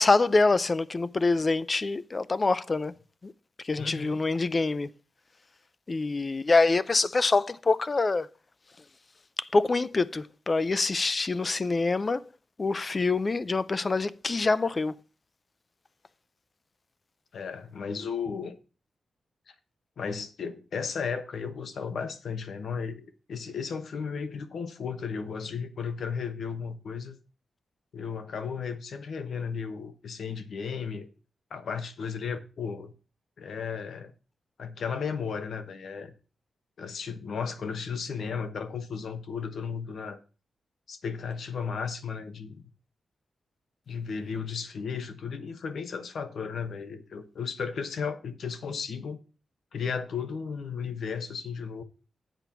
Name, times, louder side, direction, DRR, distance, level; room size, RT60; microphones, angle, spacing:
voice 1, 0.0-2.9 3.2-3.3 3.6-4.9 5.9-8.3 9.4-12.3 12.6-14.9, left 3 dB, 30° left, 0.4 m, -25 dB
voice 2, 3.8-4.2 17.3-18.6 19.5-19.6 20.0-27.2 27.9-31.1 31.5-32.9 33.4-34.1 34.6-36.1 36.8-40.2 40.9-42.6 43.9-49.2 49.7-51.8, left 6 dB, 70° left, 1.1 m, -34 dB
7.9 x 4.5 x 6.8 m
wide cardioid pair, 130°, 0 cm